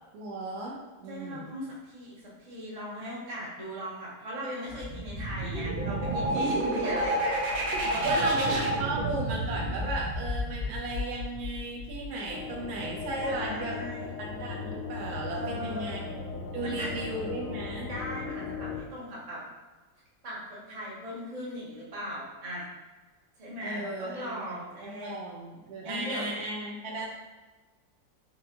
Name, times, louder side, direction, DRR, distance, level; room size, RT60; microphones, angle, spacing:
voice 1, 0.1-1.5 8.0-13.8 14.2-16.0 16.5-17.9 23.6-27.1, right 2 dB, 70° right, -2 dB, 1.0 m, -35 dB
voice 2, 1.1-7.4 7.8-8.3 13.1-14.1 15.3-16.1 16.6-16.9 17.9-19.4 20.2-22.7 23.4-25.1 25.8-26.3, equal, 35° right, -7 dB, 0.6 m, -38 dB
sound 1, 4.7-12.3, right 1 dB, 85° right, 1.4 m, -30 dB
sound 2, 12.3-18.8, left 4 dB, 70° left, 1.0 m, -37 dB
4.4 x 2.6 x 2.8 m, 1.2 s
omnidirectional pair, 2.0 m